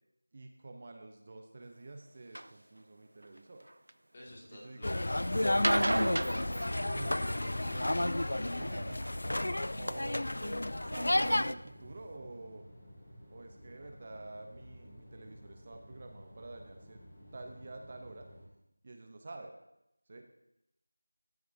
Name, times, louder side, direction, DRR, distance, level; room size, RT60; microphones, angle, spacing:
voice 1, 0.3-3.7 4.5-4.9 5.8-8.0 8.6-9.1 9.7-10.6 10.8-12.7 13.3-17.0 17.3-18.3 18.8-19.5 20.1-20.3, right 2 dB, 30° right, 5 dB, 0.6 m, -48 dB
sound 1, 2.3-2.5 3.2-3.9 5.5-7.4 9.0-9.6 10.3-10.4 10.9-11.0 11.4-11.5 11.7-11.8, right 1 dB, 75° right, 0.4 m, -34 dB
voice 2, 4.1-5.4, left 1 dB, 30° left, -3 dB, 2.2 m, -52 dB
sound 2, 4.8-11.5, left 1 dB, 70° left, 0.3 m, -31 dB
sound 3, 10.2-18.4, equal, 10° left, 2.2 m, -54 dB
14.0 x 7.9 x 2.7 m, 0.85 s
figure-of-eight pair, 175°, 0 cm